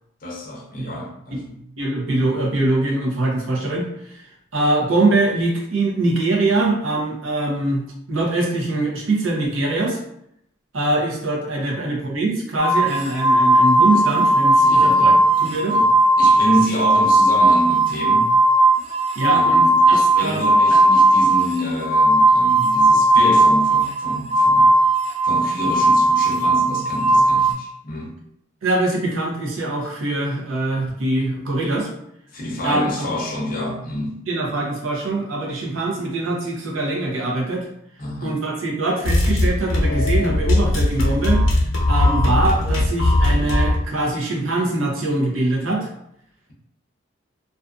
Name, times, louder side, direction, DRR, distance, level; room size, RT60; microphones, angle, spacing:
voice 1, 0.2-1.6 11.6-11.7 14.6-15.9 16.2-18.3 19.3-25.0 25.2-28.2 32.3-34.2 38.0-38.3, left 1 dB, 45° left, -2 dB, 0.6 m, -28 dB
voice 2, 1.8-4.3 4.5-7.8 8.1-10.0 10.7-15.1 15.4-15.8 19.2-20.8 28.6-31.9 32.6-33.1 34.3-37.7 38.2-41.4 41.9-45.9, right 2 dB, 90° right, -2 dB, 0.7 m, -23 dB
sound 1, 12.6-27.5, right 1 dB, 30° right, 0.6 m, -16 dB
sound 2, 39.0-43.9, left 1 dB, 85° left, 0.7 m, -19 dB
2.5 x 2.4 x 2.3 m, 0.74 s
head